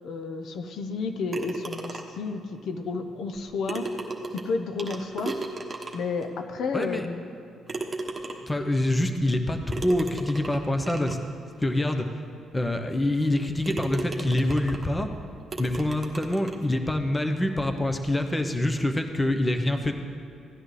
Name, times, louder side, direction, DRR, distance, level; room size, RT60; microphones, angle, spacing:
voice 1, 0.0-3.9 4.3-5.4 5.9-7.2, left 4 dB, 70° left, 6 dB, 0.7 m, -31 dB
sound 1, 1.3-2.3 3.3-3.4 3.7-6.2 6.8-6.9 7.7-8.6 9.7-11.2 11.9-12.0 12.5-12.6 13.2-13.4 13.6-15.0 15.5-16.6, right 3 dB, 25° right, 1.3 m, -35 dB
voice 2, 6.7-7.1 8.5-11.2 11.6-12.1 12.5-15.1 15.6-19.9, left 1 dB, 15° left, 6 dB, 0.8 m, -25 dB
16.5 x 10.5 x 3.3 m, 2.6 s
cardioid pair, 90°, 0 cm